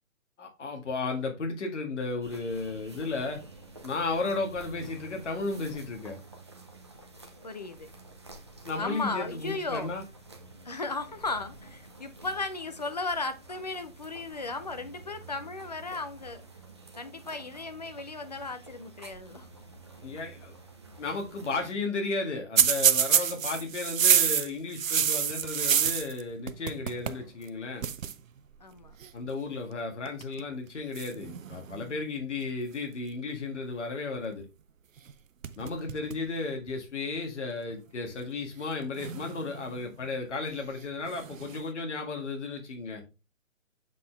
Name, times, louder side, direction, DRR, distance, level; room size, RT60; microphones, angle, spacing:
voice 1, 0.4-3.4 3.8-6.2 8.6-10.0 20.0-20.5 21.0-27.9 29.1-34.5 35.6-43.0, left 3 dB, 60° left, 1.8 m, -34 dB
sound 1, 2.2-21.7, right 3 dB, 20° right, 0.5 m, -49 dB
voice 2, 7.4-7.9 8.8-9.9 10.7-16.4 17.0-19.5 28.6-28.9, left 3 dB, 30° left, 0.5 m, -35 dB
sound 2, 22.6-26.2 26.5-27.2 27.5-27.6 27.8-28.1 29.0-29.3 30.1-30.4 31.0-32.0 35.0-35.1 35.4-36.3 36.7-36.8 37.7-37.8 38.9-39.8 41.1-41.6, right 8 dB, 70° right, 0.7 m, -27 dB
7.4 x 4.1 x 3.2 m
hypercardioid pair, 165°, 41 cm